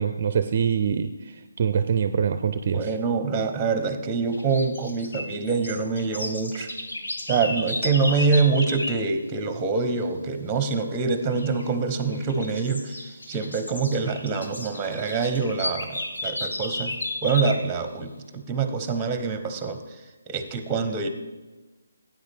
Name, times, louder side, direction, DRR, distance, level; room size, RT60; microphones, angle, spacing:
voice 1, 0.0-2.9, right 7 dB, 40° right, 11 dB, 0.5 m, -24 dB
voice 2, 2.7-6.7 7.2-16.9 17.2-21.1, right 4 dB, 15° right, 8 dB, 1.0 m, -25 dB
sound 1, 4.3-9.1 11.3-11.7 12.1-17.7, left 1 dB, 80° left, 1.7 m, -33 dB
13.0 x 9.3 x 3.6 m, 1.2 s
figure-of-eight pair, 160°, 0 cm